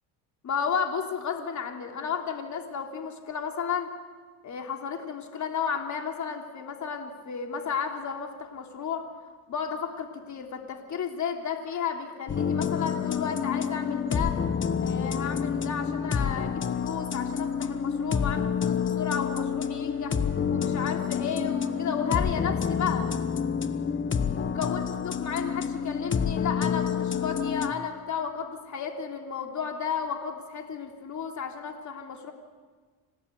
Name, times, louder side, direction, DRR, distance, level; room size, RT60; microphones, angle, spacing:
voice 1, 0.4-3.9 4.4-9.0 9.5-14.3 14.8-20.2 20.5-23.1 24.3-32.3, left 7 dB, 45° left, 3 dB, 3.2 m, -33 dB
sound 1, 12.3-27.7, left 7 dB, 30° left, 1.3 m, -28 dB
27.5 x 17.0 x 9.6 m, 1.5 s
cardioid pair, 105°, 39 cm